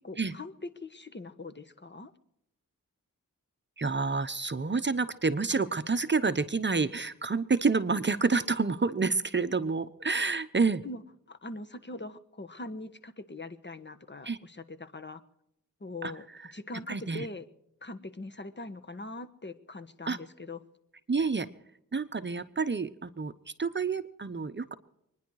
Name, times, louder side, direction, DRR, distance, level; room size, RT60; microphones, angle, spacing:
voice 1, 0.0-2.1 10.8-11.0 11.3-15.2 15.8-16.3 16.5-17.4 17.8-20.6, left 2 dB, 35° left, 11 dB, 1.4 m, -42 dB
voice 2, 3.8-10.8 14.2-14.4 16.0-16.1 16.9-17.3 20.1-20.2 21.1-21.5 21.9-24.7, right 4 dB, 35° right, 12 dB, 0.9 m, -28 dB
25.0 x 10.5 x 4.8 m, 0.78 s
cardioid pair, 60°, 33 cm